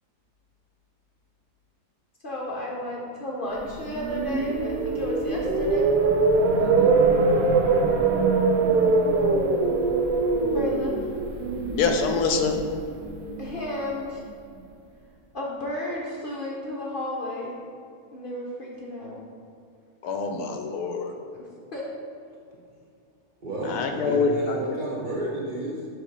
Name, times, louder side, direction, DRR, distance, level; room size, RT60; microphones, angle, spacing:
voice 1, 2.2-5.9 10.5-11.1 13.4-14.2 15.3-17.5 18.1-19.2 21.7-21.8, left 1 dB, 45° left, -3 dB, 0.7 m, -32 dB
sound 1, 3.7-13.8, right 3 dB, 70° right, 1.0 m, -23 dB
voice 2, 6.6-7.0 11.7-12.6 20.0-21.1 23.6-24.6, left 4 dB, 75° left, 4 dB, 1.1 m, -25 dB
voice 3, 23.4-25.9, right 1 dB, 40° right, -6 dB, 0.7 m, -31 dB
6.7 x 3.3 x 5.2 m, 2.4 s
omnidirectional pair, 1.7 m